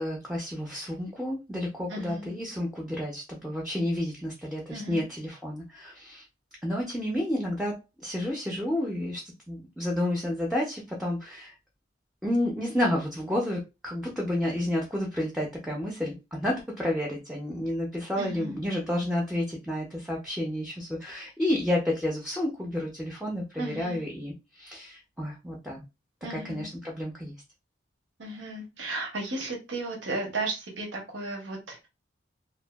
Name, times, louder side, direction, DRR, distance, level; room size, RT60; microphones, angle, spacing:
voice 1, 0.0-6.2 6.6-11.6 12.2-25.8 26.4-27.3, left 1 dB, 5° right, -1 dB, 0.4 m, -30 dB
voice 2, 1.9-2.4 4.7-5.1 18.2-18.6 23.6-24.0 26.2-26.7 28.2-31.9, right 2 dB, 80° right, 0 dB, 0.9 m, -35 dB
2.6 x 2.2 x 2.2 m, 0.26 s
head